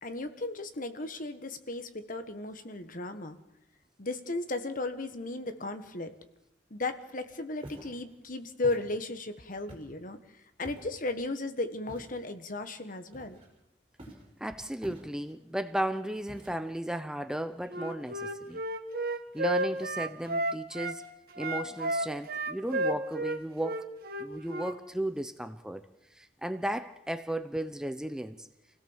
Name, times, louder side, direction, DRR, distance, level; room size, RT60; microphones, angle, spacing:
voice 1, 0.0-3.4 4.0-6.1 6.7-10.2 10.6-13.4, left 2 dB, 50° left, 9 dB, 1.5 m, -35 dB
Walk footsteps, 7.6-8.0 8.6-8.9 9.7-10.0 10.6-11.0 11.9-12.2 13.1-13.6 14.0-14.3 14.8-15.4 16.3-16.8, right 1 dB, 30° right, 5.1 m, -47 dB
voice 2, 14.4-18.6 19.3-21.1 21.4-23.9 24.2-25.8 26.1-28.5, right 1 dB, 5° right, 9 dB, 0.8 m, -35 dB
Wind instrument woodwind instrument, 17.7-21.0 21.3-24.8, right 1 dB, 55° right, 1.6 m, -32 dB
27.0 x 17.0 x 7.3 m, 0.90 s
head